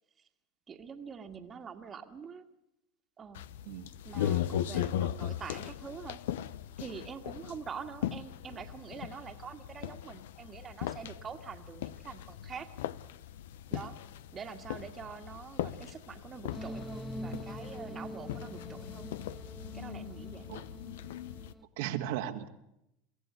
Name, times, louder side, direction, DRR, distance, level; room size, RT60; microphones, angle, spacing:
voice 1, 0.7-2.4 3.2-3.4 4.0-6.2 6.8-12.7 13.7-14.0 14.3-19.1 19.7-20.6, right 6 dB, 25° right, 6 dB, 1.8 m, -45 dB
sound 1, 3.4-21.5, left 11 dB, 85° left, 0.9 m, -39 dB
sound 2, 16.5-21.7, right 1 dB, 5° right, 0.9 m, -44 dB
voice 2, 21.8-22.5, right 11 dB, 75° right, 5 dB, 1.9 m, -35 dB
23.5 x 15.0 x 9.7 m, 0.84 s
supercardioid pair, 125°, 0 cm